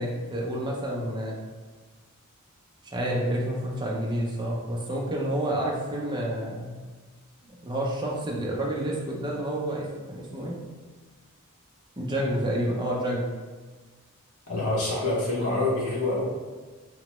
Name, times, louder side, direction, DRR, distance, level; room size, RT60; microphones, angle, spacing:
voice 1, 0.0-1.4 2.8-6.8 7.6-10.6 12.0-13.2, right 1 dB, 20° right, -3 dB, 0.5 m, -29 dB
voice 2, 14.5-16.2, left 2 dB, 70° left, -6 dB, 1.0 m, -26 dB
2.9 x 2.1 x 2.9 m, 1.3 s
head